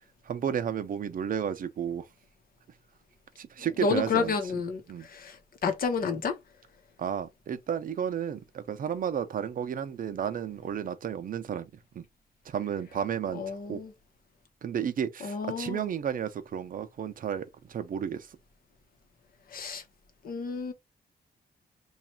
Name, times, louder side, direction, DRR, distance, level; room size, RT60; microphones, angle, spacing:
voice 1, 0.3-2.0 3.4-4.3 4.9-5.1 7.0-12.0 12.5-13.8 14.6-18.3, right 8 dB, 55° right, 0.6 m, -32 dB
voice 2, 3.8-4.8 5.1-5.4 5.6-6.4 13.3-13.9 15.2-15.9 19.5-19.8 20.2-20.7, left 5 dB, 60° left, 0.9 m, -30 dB
3.1 x 2.4 x 4.4 m
wide cardioid pair, 155°, 17 cm